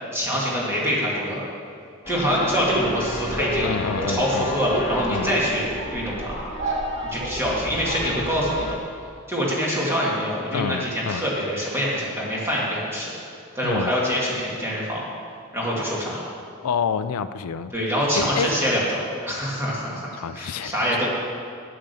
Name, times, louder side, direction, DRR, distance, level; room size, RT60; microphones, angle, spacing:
voice 1, 0.1-1.4 2.1-3.7 4.1-6.4 7.0-8.6 9.3-13.1 13.5-15.0 15.5-16.2 17.7-21.1, equal, 10° right, -5 dB, 2.3 m, -25 dB
sound 1, 2.0-8.8, equal, 25° left, 1.3 m, -34 dB
sound 2, 2.5-8.7, right 2 dB, 55° right, 2.5 m, -31 dB
voice 2, 3.6-4.5 5.1-5.3 10.5-11.3 13.6-13.9 16.6-17.7 18.2-18.5 20.1-21.0, left 6 dB, 85° left, 12 dB, 0.4 m, -28 dB
8.9 x 8.9 x 6.9 m, 2.4 s
head